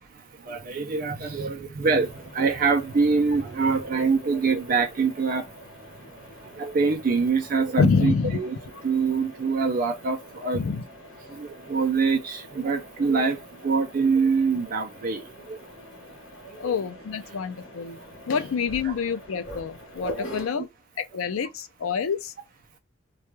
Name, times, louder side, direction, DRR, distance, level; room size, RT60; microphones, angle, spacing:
voice 1, 0.1-5.5 6.4-8.6 8.8-10.6 11.3-15.7 16.4-16.8 18.8-18.9 20.1-20.3, right 4 dB, 40° right, 0.4 m, -25 dB
Mechanisms, 1.9-20.5, equal, 65° left, 1.0 m, -44 dB
voice 2, 7.8-8.4 10.5-10.8 16.6-18.0 18.2-20.7 21.0-22.3, left 5 dB, 85° left, 0.4 m, -26 dB
2.3 x 2.2 x 3.0 m
head